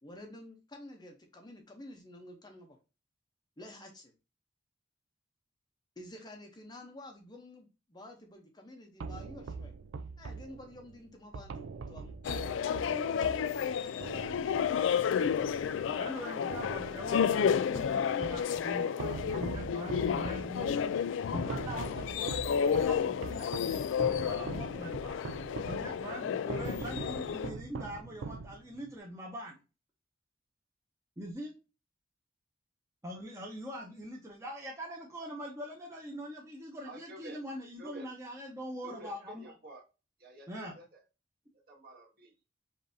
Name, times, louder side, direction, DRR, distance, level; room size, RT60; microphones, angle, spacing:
voice 1, 0.0-2.8 3.6-4.1 6.0-9.7 10.2-12.2 12.9-14.2 14.4-14.6, left 1 dB, 20° left, 3 dB, 0.7 m, -50 dB
sound 1, 9.0-16.1 16.5-18.5 19.0-28.9, right 4 dB, 90° right, 0.4 m, -43 dB
sound 2, 12.2-27.5, left 7 dB, 85° left, 0.3 m, -31 dB
voice 2, 16.0-20.8 21.3-25.2 25.6-29.5 31.2-31.5 33.0-39.4 40.5-40.7, equal, 15° right, -2 dB, 0.9 m, -43 dB
voice 3, 21.9-22.3 36.8-37.4 37.8-38.1 38.8-39.9 40.2-41.0 41.7-42.3, right 2 dB, 55° right, -4 dB, 1.8 m, -49 dB
5.2 x 2.6 x 2.6 m, 0.30 s
head